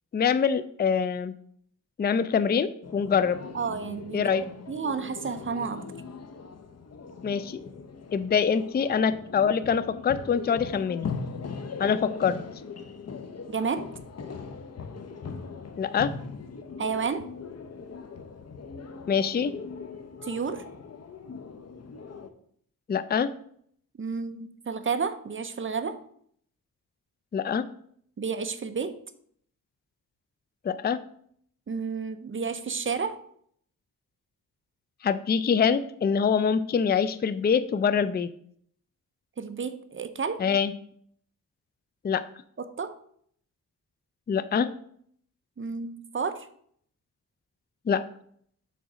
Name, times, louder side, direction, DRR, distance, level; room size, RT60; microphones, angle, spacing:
voice 1, 0.1-1.3 2.0-3.4 4.1-4.4 7.2-7.6 8.1-11.1 11.8-12.4 15.8-16.1 19.1-19.5 22.9-23.3 27.3-27.7 30.6-31.0 35.0-38.3 40.4-40.7 42.0-42.2 44.3-44.7 47.9-48.0, left 6 dB, 30° left, 13 dB, 0.4 m, -24 dB
sound 1, 2.8-22.3, left 5 dB, 45° left, 0.8 m, -40 dB
voice 2, 3.5-4.3 4.7-5.8 13.5-13.9 16.8-17.3 20.2-20.6 24.0-26.0 28.2-28.9 31.7-33.2 39.4-40.4 42.6-43.0 45.6-46.5, right 5 dB, 35° right, 10 dB, 0.7 m, -31 dB
6.2 x 4.0 x 6.1 m, 0.64 s
cardioid pair, 85°, 34 cm